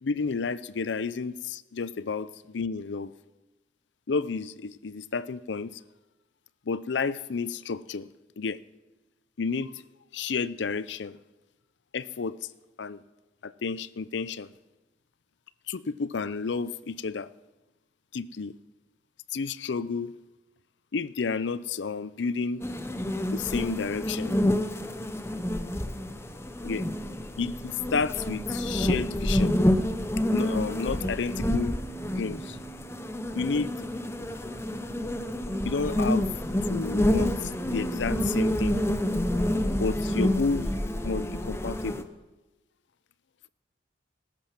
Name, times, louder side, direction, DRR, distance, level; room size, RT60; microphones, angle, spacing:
voice 1, 0.0-3.1 4.1-5.8 6.7-8.1 8.4-8.6 9.4-9.7 10.1-11.2 11.9-12.4 12.8-13.0 13.4-14.5 15.7-17.3 18.1-18.5 19.3-20.1 20.9-22.6 23.3-24.3 26.6-26.9 27.4-29.6 30.3-31.8 32.1-32.6 33.3-33.9 35.7-36.3 36.7-38.8 39.8-40.7 41.0-42.1, left 4 dB, 75° left, 17 dB, 0.5 m, -31 dB
sound 1, 22.6-42.0, left 1 dB, 15° left, 0.7 m, -28 dB
sound 2, 31.7-36.8, right 5 dB, 65° right, 4.4 m, -50 dB
18.5 x 10.5 x 6.0 m, 1.1 s
head